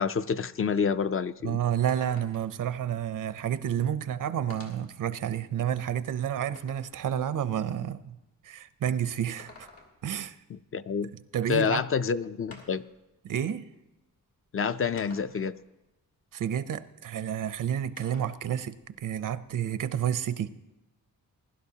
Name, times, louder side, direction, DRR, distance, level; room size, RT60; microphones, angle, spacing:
voice 1, 0.0-1.6 10.5-11.1 11.5-12.8 14.5-15.5, left 6 dB, 40° left, 0.4 m, -28 dB
sound 1, 1.4-1.5 1.9-2.6 3.7-3.8 4.5-5.0 5.6-7.0 9.2-10.2 11.7-11.8 12.5-13.0 14.0-14.1 15.0-15.6 18.0-18.4 18.8-19.9, left 3 dB, 80° left, 2.5 m, -51 dB
voice 2, 1.4-8.2 8.4-9.7 10.0-10.4 11.3-11.8 13.2-13.6 16.3-20.5, right 9 dB, 70° right, 0.6 m, -30 dB
20.5 x 11.5 x 2.8 m
wide cardioid pair, 110°, 33 cm